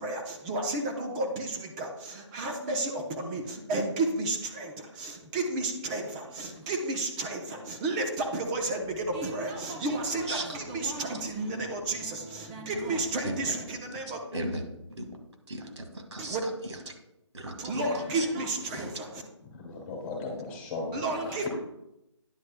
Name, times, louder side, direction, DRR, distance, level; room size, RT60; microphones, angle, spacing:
voice 1, 0.0-14.2 16.2-16.4 17.6-19.2 20.9-21.5, right 2 dB, 15° right, 2 dB, 0.7 m, -32 dB
voice 2, 14.3-14.6 14.9-15.1 15.5-16.8 17.3-17.8 18.1-18.3, right 1 dB, 70° right, 4 dB, 1.9 m, -36 dB
voice 3, 19.4-21.5, left 3 dB, 20° left, -1 dB, 2.3 m, -38 dB
9.9 x 9.4 x 2.2 m, 0.86 s
figure-of-eight pair, 155°, 15 cm